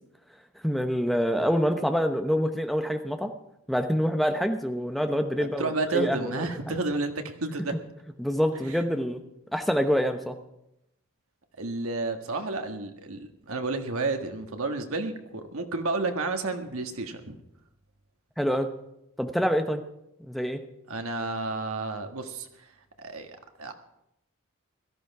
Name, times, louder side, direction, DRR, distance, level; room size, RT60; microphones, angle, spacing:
voice 1, 0.6-3.3 3.7-6.5 8.2-9.2 9.5-10.4 18.4-18.7 19.2-19.8 20.3-20.6, equal, ahead, 6 dB, 0.9 m, -26 dB
voice 2, 5.4-7.7 8.7-8.8 11.6-17.4 20.9-22.7 23.0-23.7, right 3 dB, 90° right, 5 dB, 1.6 m, -31 dB
17.0 x 13.0 x 4.7 m, 0.84 s
head